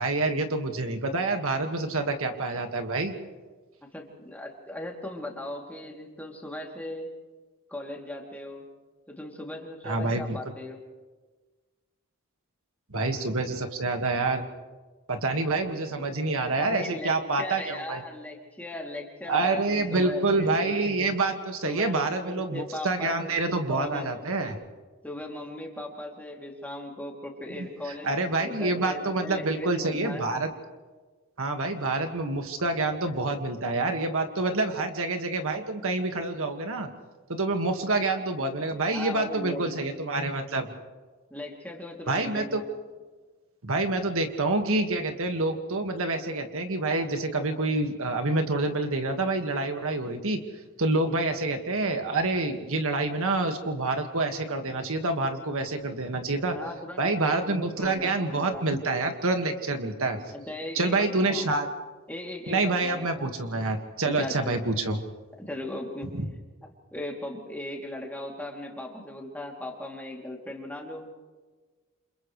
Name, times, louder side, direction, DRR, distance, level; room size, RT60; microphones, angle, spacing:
voice 1, 0.0-3.1 9.8-10.5 12.9-14.5 15.1-18.0 19.3-24.6 27.9-30.5 31.4-36.9 37.3-40.7 42.1-42.6 43.6-50.4 50.8-56.6 57.0-60.2 60.7-61.7 62.5-65.0, right 2 dB, 65° right, 5 dB, 1.8 m, -27 dB
voice 2, 3.8-7.1 7.7-8.7 9.1-10.8 16.5-20.5 21.6-24.1 25.0-30.3 38.9-39.7 41.3-42.7 56.5-58.7 60.3-61.5 62.1-63.3 64.0-64.7 65.4-66.1 66.9-71.1, left 1 dB, 5° left, 0 dB, 2.9 m, -38 dB
29.0 x 28.0 x 3.3 m, 1.3 s
head